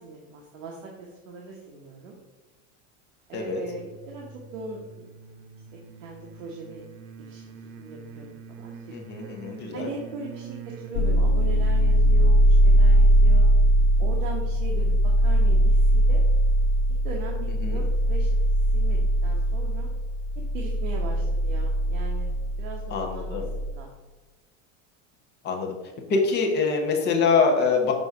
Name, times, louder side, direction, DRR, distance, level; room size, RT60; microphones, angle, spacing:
voice 1, 0.0-2.2 3.3-4.3 4.5-5.1 6.0-6.8 7.2-8.9 9.2-9.3 9.7-13.5 14.0-16.2 17.0-19.9 20.5-22.3 22.6-23.9, right 4 dB, 65° right, -1 dB, 1.3 m, -39 dB
sound 1, 3.6-11.0, right 6 dB, 90° right, 0.9 m, -44 dB
voice 2, 8.9-9.9 17.6-17.8 22.9-23.5 25.4-25.7 26.1-27.9, left 4 dB, 25° left, 2 dB, 1.0 m, -24 dB
sound 2, 10.9-23.7, right 1 dB, 60° left, 1.5 m, -21 dB
6.6 x 4.0 x 4.8 m, 1.1 s
supercardioid pair, 165°, 42 cm